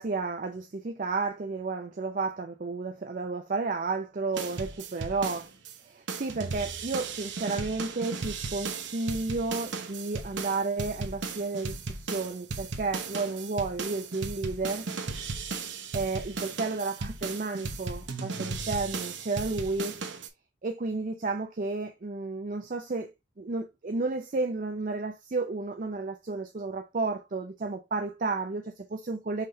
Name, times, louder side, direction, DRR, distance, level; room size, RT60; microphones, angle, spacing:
voice 1, 0.0-5.5 5.8-14.8 15.9-19.9 20.6-23.1 23.4-29.4, right 3 dB, 45° right, 0.5 m, -32 dB
sound 1, 4.4-5.8 6.1-20.3, right 4 dB, 75° right, 1.0 m, -36 dB
5.7 x 3.3 x 2.7 m
head